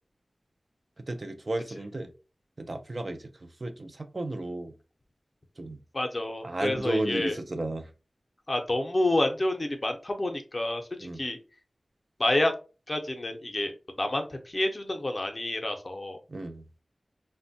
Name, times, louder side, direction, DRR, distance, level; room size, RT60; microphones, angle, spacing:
voice 1, 1.1-2.1 2.6-4.7 5.6-5.8 6.4-7.9 11.0-11.2 16.3-16.6, right 2 dB, 50° right, 7 dB, 0.4 m, -33 dB
voice 2, 5.9-7.4 8.5-11.4 12.2-12.5 12.9-13.7 14.0-16.2, left 1 dB, 40° left, 5 dB, 0.5 m, -28 dB
3.1 x 2.1 x 2.6 m, 0.33 s
wide cardioid pair, 85°, 0 cm